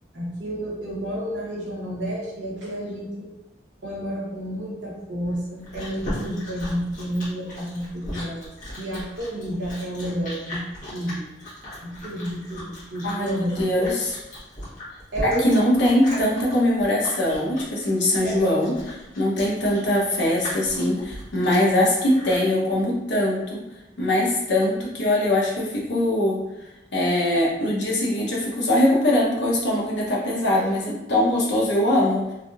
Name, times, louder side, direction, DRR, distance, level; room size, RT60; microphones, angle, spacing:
voice 1, 0.1-3.3 3.8-8.5 8.8-10.6 10.9-11.2 11.8-13.9 15.1-16.2 18.2-18.5 30.6-30.9, equal, 80° right, -4 dB, 1.0 m, -30 dB
Chewing mastication, 5.2-22.5, left 1 dB, 45° left, 1.5 m, -38 dB
voice 2, 13.0-14.1 15.2-23.6 24.0-26.4 26.9-32.3, left 1 dB, 75° left, -3 dB, 0.8 m, -22 dB
3.3 x 2.6 x 2.4 m, 0.96 s
head